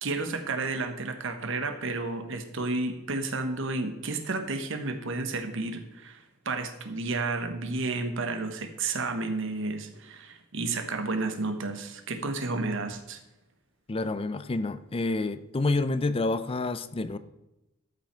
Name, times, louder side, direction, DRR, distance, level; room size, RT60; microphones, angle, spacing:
voice 1, 0.0-13.2, right 3 dB, 65° right, 7 dB, 1.1 m, -31 dB
voice 2, 13.9-17.2, left 2 dB, 25° left, 13 dB, 0.5 m, -28 dB
13.0 x 5.9 x 4.4 m, 0.94 s
head